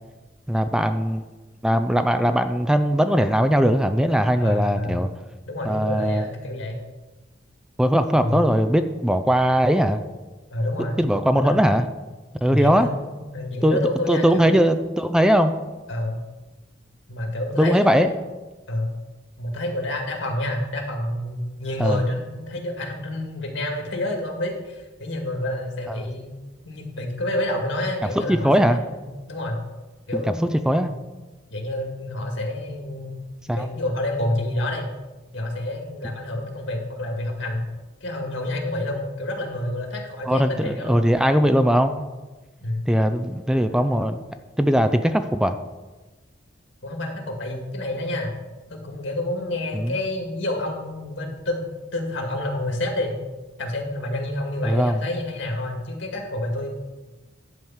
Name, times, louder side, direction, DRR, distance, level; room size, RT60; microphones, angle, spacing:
voice 1, 0.5-1.3 1.6-5.1 5.6-6.3 7.8-10.0 11.0-11.9 12.4-12.9 13.6-15.5 17.6-18.1 21.8-22.0 25.9-26.0 28.2-28.8 30.1-30.3 30.7-30.9 33.5-33.7 40.3-42.1 42.9-44.2 44.6-45.6 49.7-50.0 54.6-55.0, equal, 5° right, 9 dB, 0.4 m, -20 dB
voice 2, 4.4-5.0 5.5-6.8 8.2-8.4 10.5-11.0 11.3-11.7 12.5-14.7 15.9-16.3 17.1-18.2 18.7-18.9 19.4-26.3 26.7-29.6 30.1-30.9 31.5-33.2 33.5-34.9 35.3-37.7 38.0-41.0 42.6-42.8 43.5-44.0 46.8-48.3 48.7-51.6 51.9-53.2 53.6-56.8, left 1 dB, 70° left, 2 dB, 2.0 m, -28 dB
11.0 x 4.6 x 7.3 m, 1.2 s
head